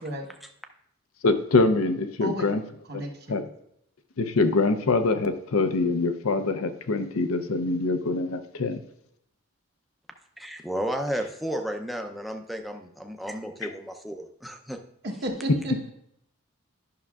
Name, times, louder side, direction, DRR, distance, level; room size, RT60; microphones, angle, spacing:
voice 1, 1.2-2.6 2.9-3.4 4.2-8.8, left 3 dB, 85° left, 8 dB, 0.6 m, -24 dB
voice 2, 2.9-3.4 15.0-15.7, right 1 dB, 50° right, 2 dB, 1.1 m, -33 dB
voice 3, 10.4-14.8, equal, ahead, 4 dB, 0.5 m, -33 dB
11.0 x 6.0 x 2.4 m, 0.74 s
head